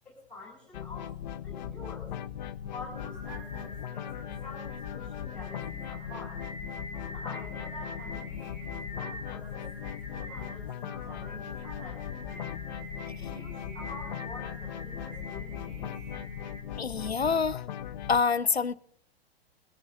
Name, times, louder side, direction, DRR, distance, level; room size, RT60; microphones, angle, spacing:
voice 1, 0.0-1.1 1.4-2.1 2.7-6.4 6.9-9.7 10.1-12.5 13.2-15.9, left 2 dB, 5° left, 5.9 m, -48 dB
sound 1, 0.7-18.2, left 10 dB, 45° left, 0.6 m, -39 dB
Singing, 2.6-16.6, right 1 dB, 45° right, 7.0 m, -45 dB
voice 2, 16.8-17.6 18.1-18.7, left 5 dB, 90° left, 0.6 m, -26 dB
22.0 x 13.5 x 2.7 m
figure-of-eight pair, 105°, 31 cm